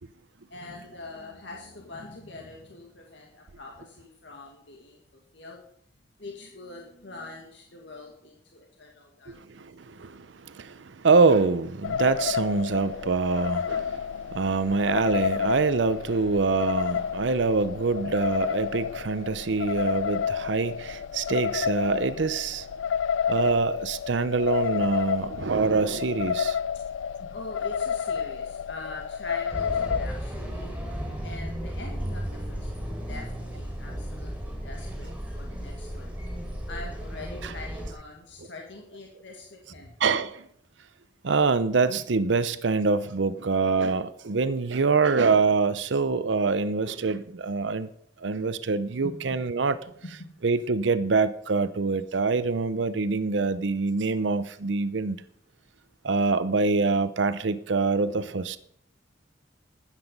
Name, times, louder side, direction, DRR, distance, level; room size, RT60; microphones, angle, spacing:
voice 1, 0.5-5.6 6.2-9.4 26.7-26.8 27.2-30.7 31.2-36.1 36.7-40.0 49.0-49.4 50.0-50.3, left 2 dB, 70° left, 1.9 m, -43 dB
voice 2, 9.3-22.7 23.3-26.6 37.4-37.5 40.0-40.4 41.2-47.9 48.2-49.8 50.0-55.2 56.0-58.6, right 4 dB, 75° right, 0.6 m, -25 dB
sound 1, 11.8-30.1, left 7 dB, 90° left, 0.4 m, -30 dB
sound 2, 29.5-37.9, equal, 10° right, 3.4 m, -34 dB
13.0 x 10.0 x 5.4 m
head